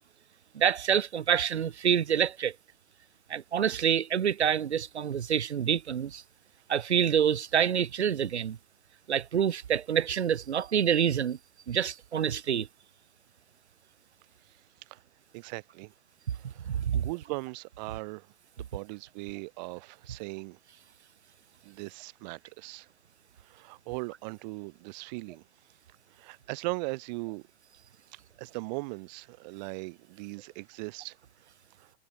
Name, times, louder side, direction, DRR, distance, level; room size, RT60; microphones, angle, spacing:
voice 1, 0.5-2.5 3.3-6.2 6.7-8.6 9.1-11.4 11.7-12.7 16.7-17.1, right 8 dB, 80° right, 0.5 m, -27 dB
voice 2, 15.3-15.9 16.3-18.3 18.6-20.6 21.6-22.9 23.4-25.4 26.1-27.4 28.1-31.2 31.8-31.9, right 26 dB, 40° right, 7.9 m, -39 dB
figure-of-eight pair, 105°, 33 cm